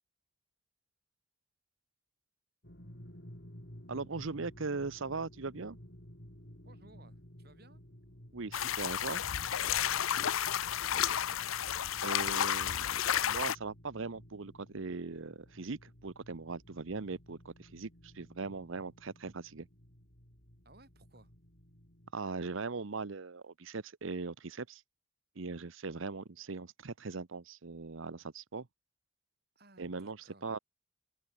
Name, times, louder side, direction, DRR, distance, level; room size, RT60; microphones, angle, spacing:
sound 1, 2.6-22.1, equal, 55° left, 6.9 m, -55 dB
voice 1, 3.9-5.8 8.3-9.2 12.0-19.7 22.1-24.8 25.4-28.7 29.8-30.6, right 4 dB, 75° right, 0.8 m, -40 dB
voice 2, 6.6-7.8 9.7-11.5 20.7-21.3 29.6-30.6, right 2 dB, 50° right, 6.9 m, -62 dB
sound 2, 8.5-13.6, left 10 dB, 85° left, 0.6 m, -32 dB
open air
head